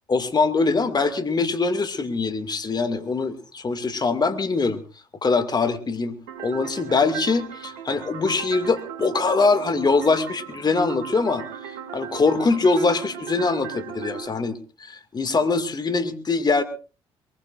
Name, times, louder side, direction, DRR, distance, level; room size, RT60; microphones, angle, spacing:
voice 1, 0.1-4.8 5.2-11.4 11.9-16.6, left 4 dB, 35° left, 9 dB, 2.2 m, -23 dB
sound 1, 6.3-14.3, right 8 dB, 85° right, 2.5 m, -37 dB
23.0 x 20.5 x 2.5 m, 0.35 s
supercardioid pair, 65°, 13 cm